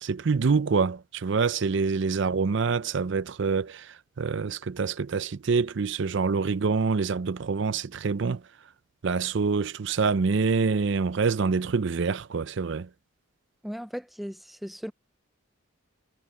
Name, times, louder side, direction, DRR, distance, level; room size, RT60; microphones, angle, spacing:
voice 1, 0.0-8.4 9.0-12.9, right 5 dB, 60° right, 0.5 m, -26 dB
voice 2, 13.6-14.9, equal, ahead, 0.5 m, -37 dB
head